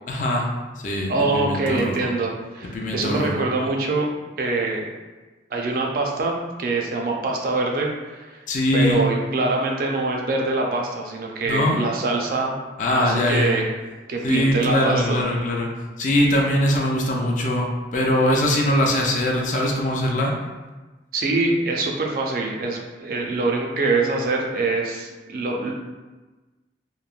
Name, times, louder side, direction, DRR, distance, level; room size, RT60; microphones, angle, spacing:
voice 1, 0.1-0.5 0.8-2.1 2.7-3.5 8.5-9.0 11.5-11.8 12.8-13.6 14.2-15.7 16.0-20.3, left 1 dB, 45° left, -1 dB, 0.4 m, -22 dB
voice 2, 1.1-4.1 4.4-4.9 5.5-8.4 8.7-12.6 12.9-13.7 14.1-15.2 21.1-25.7, right 3 dB, 50° right, 0 dB, 0.3 m, -24 dB
3.0 x 2.1 x 2.3 m, 1.2 s
head